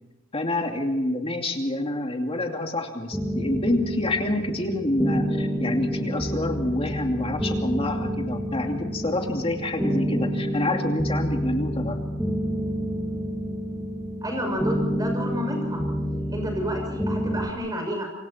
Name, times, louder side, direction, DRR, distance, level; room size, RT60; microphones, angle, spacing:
voice 1, 0.3-12.0, left 1 dB, 25° left, 3 dB, 2.6 m, -27 dB
sound 1, 3.1-17.5, equal, ahead, 2.0 m, -28 dB
voice 2, 14.2-15.8 16.3-18.1, equal, 20° right, 3 dB, 6.6 m, -30 dB
27.5 x 25.5 x 4.5 m, 0.99 s
head